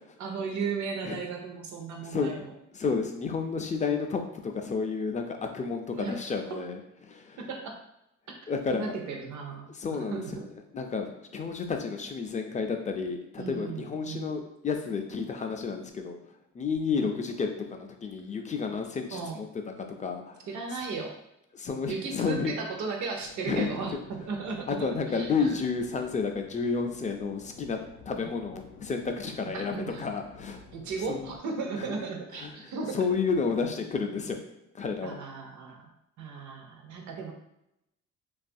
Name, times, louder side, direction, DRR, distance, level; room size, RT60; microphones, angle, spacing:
voice 1, 0.2-2.5 5.9-6.2 6.5-6.6 7.4-7.8 8.7-9.7 10.1-10.4 13.4-14.4 17.0-17.1 19.1-19.4 20.5-21.1 21.9-25.5 28.1-28.3 29.5-30.0 30.7-33.0 35.0-35.9 36.2-37.3, right 4 dB, 70° right, 2 dB, 0.6 m, -35 dB
voice 2, 2.0-2.3 2.7-7.4 8.5-8.9 9.7-10.2 10.7-16.2 16.5-19.5 20.0-20.4 21.5-22.5 23.5-24.0 24.7-27.8 28.1-30.6 31.1-31.3 31.7-31.9 32.3-34.4 34.7-35.2, left 5 dB, 25° left, 4 dB, 0.4 m, -31 dB
sound 1, 23.2-31.4, left 4 dB, 90° left, 0.5 m, -52 dB
2.7 x 2.4 x 2.6 m, 0.83 s
cardioid pair, 90°, 30 cm